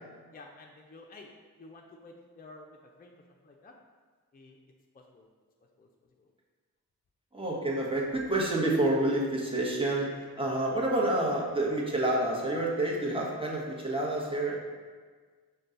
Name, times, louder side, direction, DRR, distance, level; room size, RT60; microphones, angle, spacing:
voice 1, 0.3-1.3 1.6-3.7 4.3-4.6 4.9-5.3 5.8-5.9 6.2-6.3, left 2 dB, 25° left, 1 dB, 0.5 m, -51 dB
voice 2, 7.3-10.1 10.4-14.6, right 1 dB, 15° right, -4 dB, 1.1 m, -28 dB
5.3 x 2.3 x 3.8 m, 1.5 s
cardioid pair, 45°, 37 cm